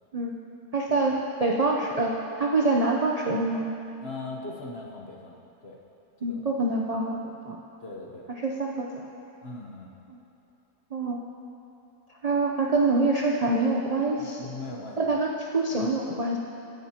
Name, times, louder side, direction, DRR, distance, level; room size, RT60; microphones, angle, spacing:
voice 1, 0.7-1.1 1.4-3.7 6.2-7.6 8.4-9.0 10.1-10.2 10.9-11.2 12.2-14.4 15.0-16.4, right 2 dB, 65° right, -1 dB, 0.3 m, -25 dB
voice 2, 4.0-5.8 6.2-6.5 7.8-8.3 9.4-9.9 14.2-15.1, left 3 dB, 45° left, 0 dB, 1.1 m, -40 dB
16.0 x 10.5 x 2.9 m, 2.9 s
omnidirectional pair, 1.7 m